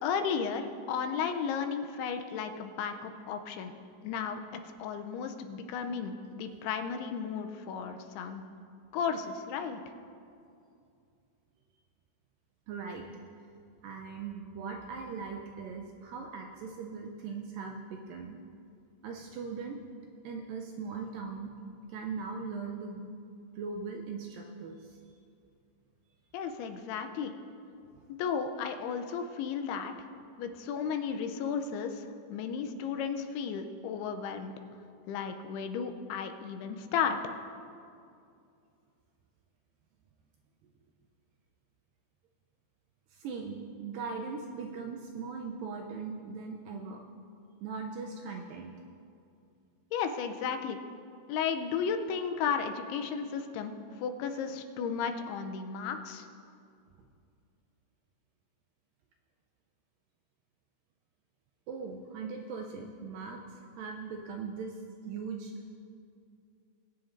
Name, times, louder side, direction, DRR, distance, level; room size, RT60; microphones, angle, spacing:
voice 1, 0.0-3.7 4.0-8.4 8.9-9.8 26.3-27.3 28.1-29.9 30.4-32.0 32.3-34.5 35.1-37.2 49.9-50.8 51.3-53.7 54.0-56.2, left 6 dB, 85° left, 7 dB, 2.7 m, -34 dB
voice 2, 12.7-13.2 13.8-18.4 19.0-19.8 20.2-21.5 21.9-23.1 23.6-24.8 43.2-47.0 47.6-48.7 61.7-63.4 63.8-64.8 65.0-65.5, right 5 dB, 80° right, 2 dB, 2.1 m, -39 dB
21.0 x 10.0 x 2.6 m, 2.5 s
omnidirectional pair, 4.6 m